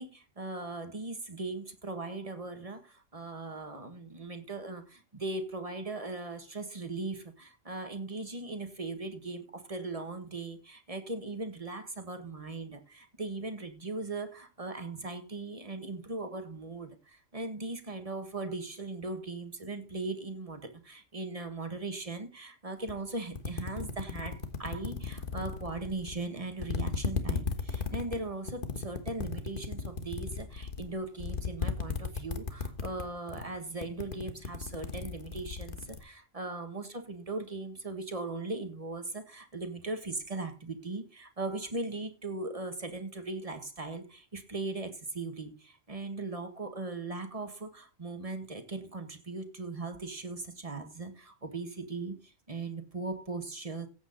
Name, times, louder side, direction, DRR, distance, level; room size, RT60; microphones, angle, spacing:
voice 1, 0.0-53.9, right 3 dB, 25° right, 1.7 m, -39 dB
sound 1, 22.9-23.0 23.3-26.2 26.6-33.0 33.3-33.6 33.8-36.0, left 5 dB, 40° left, 1.5 m, -35 dB
14.5 x 8.4 x 4.1 m
omnidirectional pair, 1.4 m